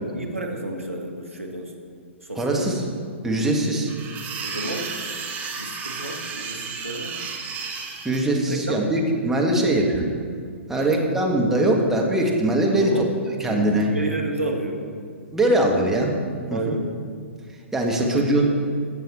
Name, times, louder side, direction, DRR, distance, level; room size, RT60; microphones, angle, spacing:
voice 1, 0.1-1.7 2.2-2.7 4.4-4.9 5.6-7.3 8.5-9.0 10.8-11.1 12.7-13.1 13.4-14.8 16.5-16.9 17.8-18.6, right 2 dB, 80° right, 3 dB, 1.6 m, -31 dB
voice 2, 2.3-2.8 3.2-3.9 8.0-10.0 10.7-13.0 13.4-13.9 15.3-16.1 16.5-16.7 17.7-18.5, right 1 dB, 5° right, -1 dB, 1.5 m, -21 dB
sound 1, 3.9-8.2, right 5 dB, 20° right, 1.4 m, -33 dB
16.0 x 6.4 x 4.2 m, 2.2 s
figure-of-eight pair, 115°, 7 cm